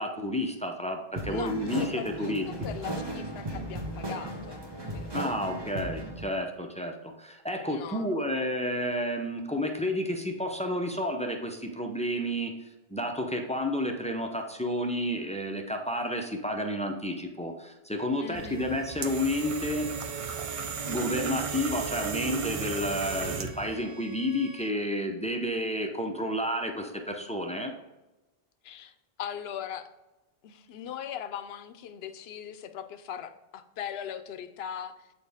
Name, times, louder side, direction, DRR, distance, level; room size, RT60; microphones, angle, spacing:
voice 1, 0.0-2.5 5.1-12.5 12.9-19.9 20.9-27.7, left 1 dB, 10° left, 3 dB, 0.4 m, -31 dB
sound 1, 1.2-6.2, right 1 dB, 25° right, 1.0 m, -36 dB
voice 2, 1.3-4.6 4.9-5.5 7.7-8.3 18.2-18.7 28.6-29.9 30.4-35.1, left 9 dB, 80° left, 10 dB, 0.8 m, -40 dB
Bowed string instrument, 18.0-24.8, right 1 dB, 65° right, 1.1 m, -51 dB
sound 2, 18.3-23.7, right 6 dB, 45° right, 0.4 m, -34 dB
8.4 x 4.3 x 3.4 m, 1.0 s
omnidirectional pair, 1.0 m